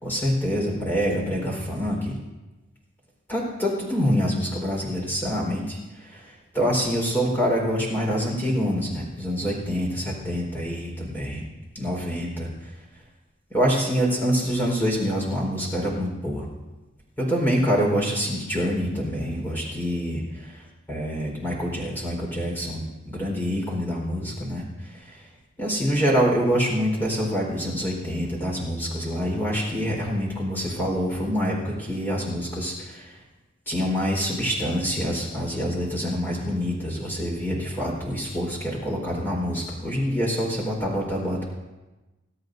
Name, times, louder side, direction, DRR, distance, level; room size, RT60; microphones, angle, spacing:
voice 1, 0.0-2.1 3.3-11.4 11.7-12.5 13.5-16.5 17.2-20.6 20.9-25.2 25.6-33.1 33.7-41.4, equal, 10° left, -3 dB, 4.4 m, -26 dB
25.5 x 13.0 x 2.7 m, 1.1 s
head